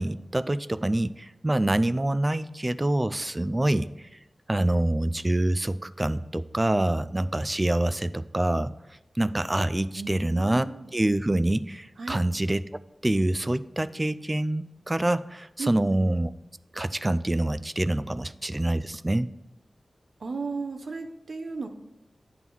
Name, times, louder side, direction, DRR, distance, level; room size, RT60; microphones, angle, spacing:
voice 1, 0.0-4.1 4.5-8.7 9.2-10.7 10.9-12.7 13.0-16.3 16.7-19.3, right 1 dB, 20° right, 15 dB, 0.3 m, -26 dB
voice 2, 10.0-10.9 12.0-12.2 15.6-16.0 20.2-21.7, right 4 dB, 70° right, 6 dB, 0.8 m, -35 dB
9.7 x 3.6 x 6.1 m, 0.91 s
wide cardioid pair, 85°, 0 cm